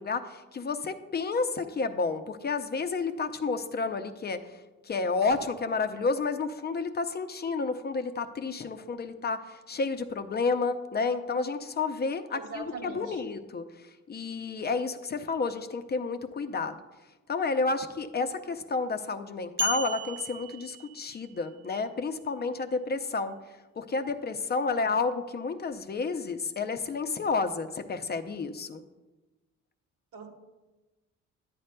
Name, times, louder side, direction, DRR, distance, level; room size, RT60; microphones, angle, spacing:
voice 1, 0.0-4.4 4.9-13.7 14.1-16.8 17.3-23.3 23.8-28.8, left 4 dB, 35° left, 8 dB, 0.6 m, -30 dB
voice 2, 12.3-13.2 24.7-24.9 30.1-30.3, right 3 dB, 80° right, 2 dB, 1.3 m, -41 dB
sound 1, 19.6-21.4, equal, 40° right, 1.1 m, -34 dB
11.0 x 8.2 x 2.2 m, 1.1 s
cardioid pair, 90°, 30 cm